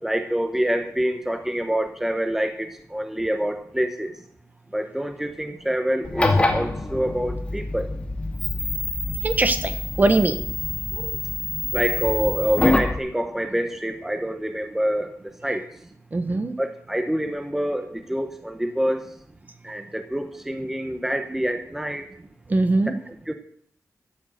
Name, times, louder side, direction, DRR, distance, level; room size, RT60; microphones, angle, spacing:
voice 1, 0.0-4.1 4.7-7.9 11.7-15.7 16.6-19.1 19.6-22.1 23.1-23.3, equal, 5° right, 6 dB, 1.0 m, -26 dB
sound 1, 6.0-13.0, left 2 dB, 20° left, 2.1 m, -26 dB
voice 2, 9.2-10.4 11.0-11.1 16.1-16.5 22.5-22.9, right 2 dB, 30° right, 8 dB, 1.1 m, -21 dB
13.0 x 9.0 x 7.6 m, 0.65 s
wide cardioid pair, 175°, 6 cm